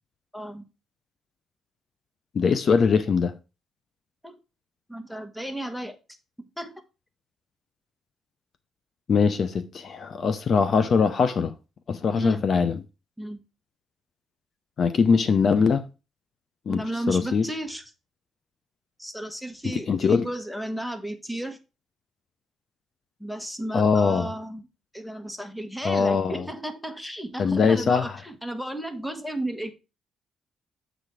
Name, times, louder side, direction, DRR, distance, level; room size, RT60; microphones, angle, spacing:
voice 1, 0.3-0.6 4.2-4.4 4.9-6.0 6.4-6.8 12.1-12.5 13.2-13.4 16.7-17.8 19.0-21.6 23.2-24.7 24.9-29.7, right 1 dB, 5° left, 1.2 m, -33 dB
voice 2, 2.3-3.3 9.1-11.5 11.9-12.8 14.8-15.8 16.7-17.5 19.7-20.3 23.7-24.3 25.8-26.5 27.4-28.1, left 5 dB, 50° left, 0.6 m, -22 dB
7.9 x 4.1 x 4.6 m
cardioid pair, 90°, 0 cm